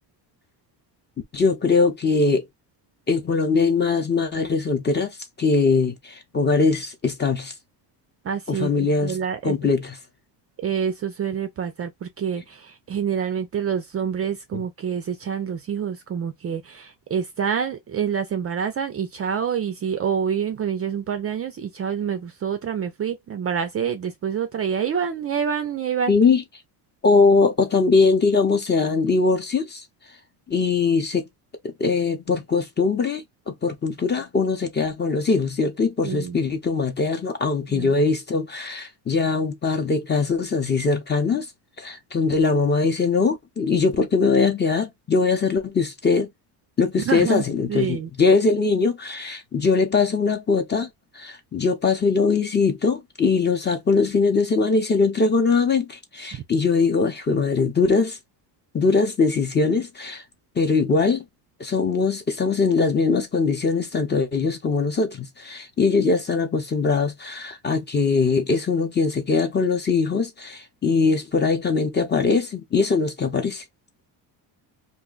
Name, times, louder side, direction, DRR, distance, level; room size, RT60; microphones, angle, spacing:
voice 1, 1.3-2.5 3.1-7.5 8.5-9.2 9.4-9.9 14.5-14.6 26.1-26.4 27.0-29.8 30.5-31.3 31.6-41.5 41.8-46.3 46.8-50.9 51.1-58.2 58.7-60.2 60.6-61.2 61.6-73.6, left 4 dB, 25° left, 0.7 m, -21 dB
voice 2, 8.2-9.7 10.6-26.1 36.0-36.4 37.7-37.9 47.0-47.4 47.7-48.1 56.3-56.4, right 7 dB, 35° right, 0.4 m, -27 dB
2.5 x 2.2 x 3.8 m
cardioid pair, 130°, 45 cm